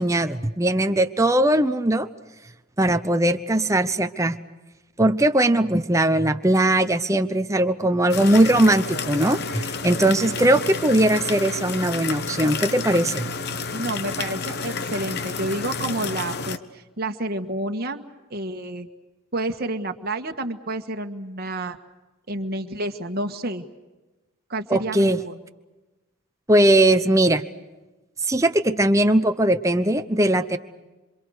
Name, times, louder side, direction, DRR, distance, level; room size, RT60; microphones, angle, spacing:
voice 1, 0.0-2.1 2.8-4.4 5.0-13.3 24.7-25.2 26.5-27.4 28.2-30.6, right 1 dB, 15° right, 7 dB, 0.8 m, -20 dB
sound 1, 8.1-16.6, left 4 dB, 45° left, 1.1 m, -30 dB
voice 2, 13.7-18.0 18.3-18.9 19.3-21.8 22.3-23.6 24.5-25.4, right 1 dB, 45° right, 5 dB, 1.6 m, -29 dB
27.5 x 26.0 x 6.5 m, 1.1 s
head